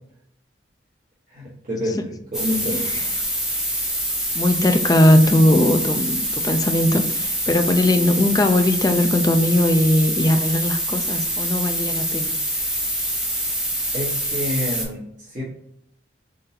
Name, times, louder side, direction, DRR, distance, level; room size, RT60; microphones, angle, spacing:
voice 1, 1.3-2.9 13.9-15.4, left 1 dB, 45° right, -9 dB, 1.3 m, -28 dB
sound 1, 2.3-14.8, equal, 5° right, 0.9 m, -25 dB
voice 2, 2.7-3.1 4.3-12.3, left 1 dB, 20° left, 7 dB, 0.3 m, -19 dB
4.2 x 3.8 x 2.8 m, 0.71 s
head